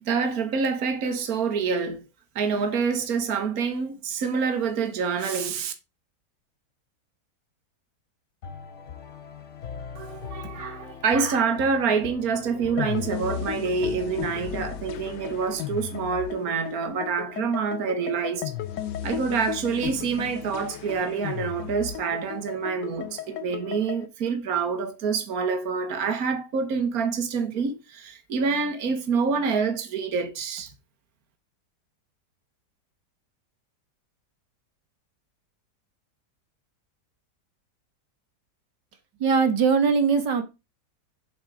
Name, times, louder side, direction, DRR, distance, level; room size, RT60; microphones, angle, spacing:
voice 1, 0.1-2.0 2.4-5.7 10.0-18.5 19.0-30.7, right 5 dB, 60° right, 1.9 m, -27 dB
sound 1, 8.4-15.6, left 6 dB, 50° left, 1.2 m, -41 dB
sound 2, 12.8-24.1, left 11 dB, 85° left, 1.5 m, -35 dB
voice 2, 39.2-40.4, right 5 dB, 85° right, 2.3 m, -21 dB
7.6 x 7.2 x 4.9 m
omnidirectional pair, 1.8 m